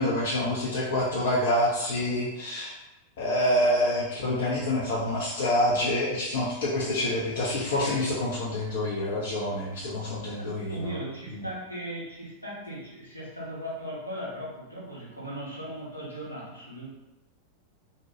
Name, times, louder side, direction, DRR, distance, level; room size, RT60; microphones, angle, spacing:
voice 1, 0.0-2.7 3.2-10.9 11.4-11.5, left 1 dB, 60° left, -5 dB, 0.5 m, -27 dB
voice 2, 10.4-16.9, equal, 90° left, -7 dB, 1.0 m, -38 dB
2.8 x 2.2 x 2.9 m, 0.92 s
figure-of-eight pair, 90°, 0 cm